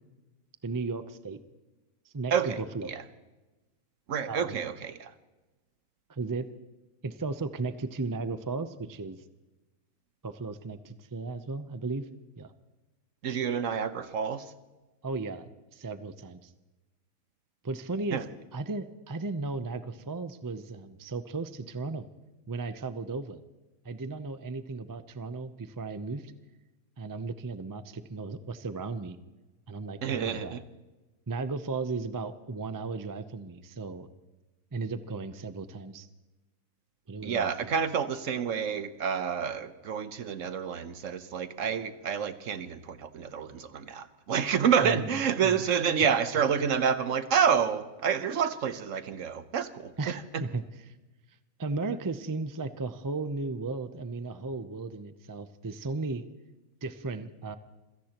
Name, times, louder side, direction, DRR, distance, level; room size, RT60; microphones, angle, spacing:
voice 1, 0.6-1.4 2.1-2.9 4.3-4.6 6.1-6.5 7.0-9.2 10.2-12.1 12.4-12.5 15.0-16.5 17.6-18.2 18.5-22.0 22.5-23.4 23.8-26.3 27.0-29.2 29.7-30.6 31.3-34.1 34.7-36.1 37.1-37.7 44.8-45.2 45.4-45.6 50.0-50.6 51.6-56.2 56.8-57.5, right 3 dB, 25° right, 11 dB, 0.4 m, -35 dB
voice 2, 2.3-3.0 4.1-5.1 13.2-14.5 18.1-18.3 30.0-30.6 37.2-50.4, right 7 dB, 60° right, 12 dB, 1.2 m, -29 dB
27.0 x 17.0 x 3.0 m, 1.1 s
omnidirectional pair, 1.6 m